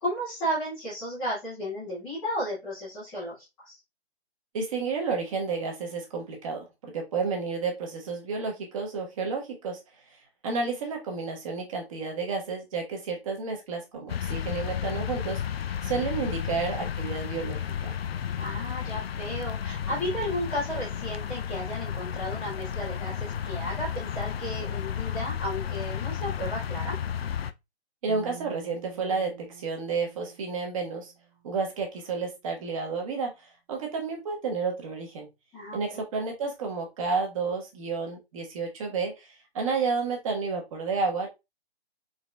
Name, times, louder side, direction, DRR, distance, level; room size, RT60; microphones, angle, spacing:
voice 1, 0.0-3.8 18.3-26.9 35.5-35.8, equal, 5° left, -14 dB, 0.4 m, -34 dB
voice 2, 4.5-9.8 10.4-15.4 15.8-17.9 28.0-31.1 31.4-35.3 35.7-39.3 39.5-41.3, right 4 dB, 30° right, 1 dB, 1.2 m, -31 dB
sound 1, 14.1-27.5, left 8 dB, 65° left, 0.5 m, -32 dB
sound 2, 28.1-31.4, right 8 dB, 50° right, 1.0 m, -48 dB
4.0 x 4.0 x 2.2 m, 0.23 s
figure-of-eight pair, 140°, 34 cm